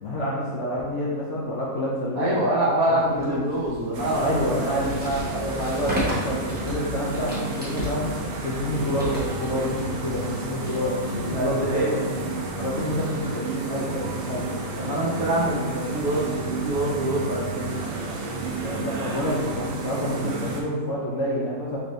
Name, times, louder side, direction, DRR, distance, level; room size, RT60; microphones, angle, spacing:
voice 1, 0.0-2.4 2.9-3.4 4.2-8.1 8.4-12.1 12.6-14.4 18.6-21.8, equal, 65° left, -4 dB, 0.8 m, -28 dB
voice 2, 2.2-4.8 11.3-12.0 14.8-17.7, right 1 dB, 65° right, -6 dB, 1.4 m, -25 dB
sound 1, 3.1-11.8, equal, 10° right, 0.6 m, -35 dB
sound 2, 3.9-20.6, right 2 dB, 85° right, 0.5 m, -31 dB
4.3 x 2.6 x 3.1 m, 1.3 s
omnidirectional pair, 1.6 m